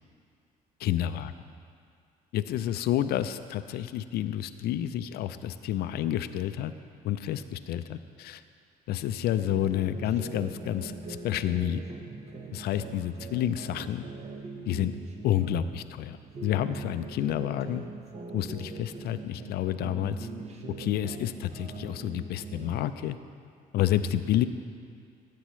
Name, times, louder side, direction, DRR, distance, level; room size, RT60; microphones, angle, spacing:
voice 1, 0.8-1.3 2.3-6.7 7.0-8.4 8.9-10.9 11.2-11.8 12.5-14.1 14.7-14.9 15.2-17.8 18.3-20.3 20.8-23.2 23.7-24.5, left 11 dB, 70° left, 12 dB, 0.4 m, -29 dB
sound 1, 9.3-15.8 16.2-19.5 19.8-22.9, right 3 dB, 40° right, 1.0 m, -42 dB
13.5 x 8.5 x 3.2 m, 2.2 s
cardioid pair, 110°, 17 cm